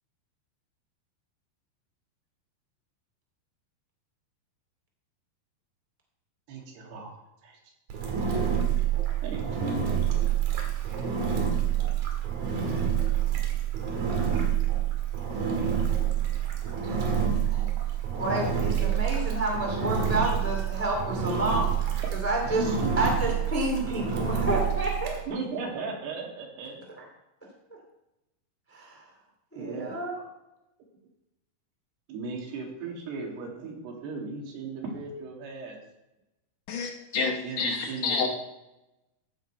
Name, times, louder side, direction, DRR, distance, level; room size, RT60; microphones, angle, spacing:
voice 1, 6.5-7.2 7.4-7.6 9.2-10.0 22.5-23.1 25.3-26.8 29.5-29.9 32.1-35.8 37.4-38.3, right 3 dB, 85° right, 4.0 m, -36 dB
Engine, 7.9-25.2, right 8 dB, 65° right, 3.3 m, -27 dB
voice 2, 16.7-17.0 17.5-17.6 18.2-25.4 27.0-27.1 28.7-29.1 29.5-30.2, right 1 dB, 5° left, 1.3 m, -30 dB
voice 3, 36.7-38.3, left 4 dB, 70° left, 2.2 m, -29 dB
14.5 x 6.5 x 4.5 m
omnidirectional pair, 4.5 m